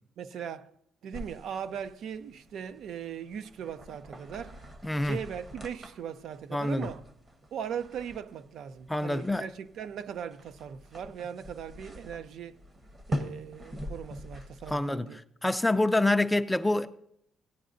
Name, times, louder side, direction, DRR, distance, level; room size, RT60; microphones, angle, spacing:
voice 1, 0.2-0.7 1.0-4.6 5.0-7.0 7.5-12.6 13.1-15.2, right 8 dB, 70° right, 0.4 m, -39 dB
sound 1, 1.1-14.8, equal, 25° right, 0.9 m, -43 dB
voice 2, 4.8-5.2 6.5-6.9 8.9-9.5 14.7-15.1 15.4-16.9, left 2 dB, 5° left, 0.4 m, -26 dB
17.0 x 9.2 x 2.6 m
cardioid pair, 145°, 0 cm